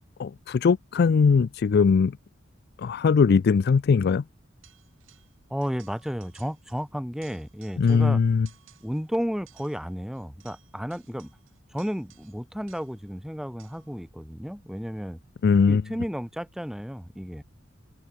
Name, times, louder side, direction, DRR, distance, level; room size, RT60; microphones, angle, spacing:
voice 1, 0.2-2.2 2.8-4.2 7.8-8.5 15.4-15.8, left 5 dB, 55° left, 0.4 m, -20 dB
sound 1, 4.6-5.4 5.6-6.9 7.1-8.1 8.5-9.1 9.5-13.1 13.6-14.0, right 12 dB, 90° right, 6.2 m, -58 dB
voice 2, 5.5-8.2 8.8-11.3 11.7-15.2 15.7-17.4, equal, ahead, 1.6 m, -33 dB
head